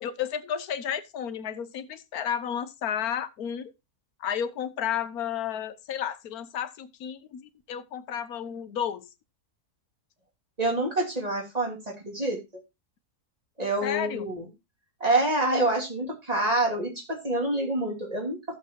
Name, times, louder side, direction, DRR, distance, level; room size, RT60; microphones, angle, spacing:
voice 1, 0.0-3.7 4.2-9.1 13.8-14.3, left 9 dB, 75° left, 1.3 m, -32 dB
voice 2, 10.6-12.4 13.6-14.5 15.0-18.5, right 2 dB, 25° right, 3.0 m, -27 dB
14.5 x 6.9 x 2.8 m
omnidirectional pair, 1.7 m